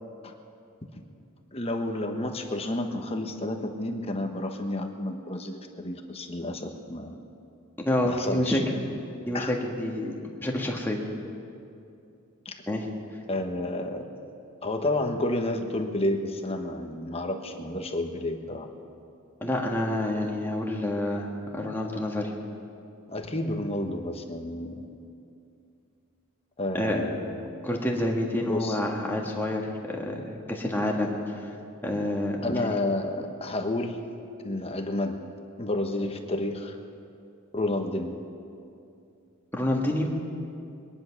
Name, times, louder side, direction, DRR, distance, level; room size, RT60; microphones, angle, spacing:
voice 1, 1.5-7.2 8.0-8.6 9.3-9.6 12.4-12.5 13.3-14.1 14.6-18.7 23.1-24.9 26.6-27.5 28.5-28.8 32.4-34.0 34.4-35.2 35.6-36.8 37.5-38.2, left 1 dB, 25° left, 4 dB, 1.1 m, -30 dB
voice 2, 7.8-8.6 9.3-10.1 10.4-11.0 12.7-12.9 19.4-22.3 26.7-27.0 27.6-31.1 31.8-32.7 39.5-40.1, left 1 dB, 10° left, -1 dB, 1.6 m, -28 dB
22.5 x 10.5 x 5.9 m, 2.5 s
head